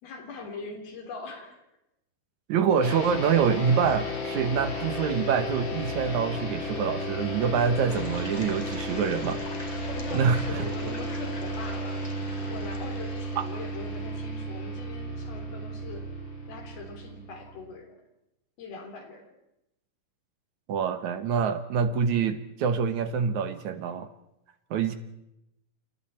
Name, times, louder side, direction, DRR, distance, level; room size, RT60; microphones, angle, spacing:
voice 1, 0.0-1.6 9.9-12.1 12.5-16.1 16.5-18.0 18.6-19.3, left 4 dB, 75° left, 3 dB, 5.5 m, -42 dB
voice 2, 2.5-9.4 10.1-10.7 13.4-13.5 20.7-24.1 24.7-25.0, right 6 dB, 65° right, 10 dB, 2.1 m, -26 dB
sound 1, 2.8-17.6, equal, 30° left, 3.4 m, -34 dB
sound 2, 7.9-14.0, left 1 dB, 10° left, 2.5 m, -44 dB
29.0 x 28.0 x 4.4 m, 0.85 s
omnidirectional pair, 4.4 m